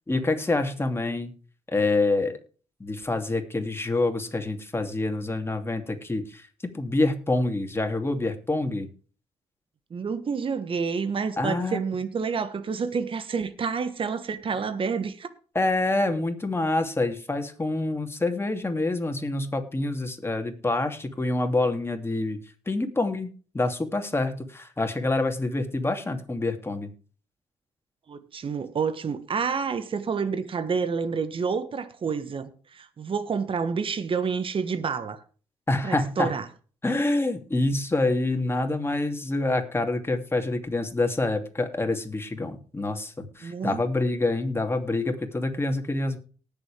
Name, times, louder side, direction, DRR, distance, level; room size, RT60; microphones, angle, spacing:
voice 1, 0.1-1.3 1.7-2.4 2.8-6.5 6.7-8.9 11.4-11.8 15.5-22.4 22.7-23.3 23.5-26.9 35.7-36.3 36.8-46.2, left 2 dB, 20° left, 2.7 m, -26 dB
voice 2, 9.9-15.3 28.1-35.2 35.8-36.5 43.4-43.8, right 5 dB, 50° right, 1.3 m, -29 dB
19.0 x 7.1 x 3.5 m
cardioid pair, 65°, 12 cm